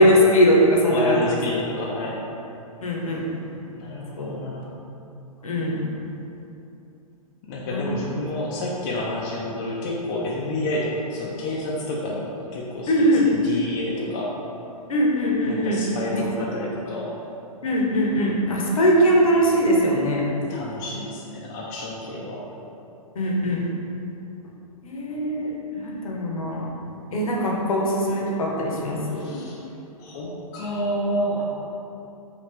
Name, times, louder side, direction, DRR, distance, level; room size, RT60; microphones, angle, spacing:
voice 1, 0.0-1.4 2.8-3.3 4.2-4.3 5.4-5.9 7.7-7.9 12.9-13.2 14.9-15.8 16.1-16.2 17.6-20.2 23.2-23.6 24.8-26.6 27.1-29.4, equal, 65° left, -3 dB, 0.7 m, -21 dB
voice 2, 0.9-2.2 3.7-4.7 7.4-14.3 15.5-17.1 20.5-22.4 29.1-29.6 30.0-31.4, left 1 dB, 30° left, -3 dB, 0.4 m, -29 dB
3.3 x 2.7 x 3.2 m, 2.8 s
figure-of-eight pair, 115°, 19 cm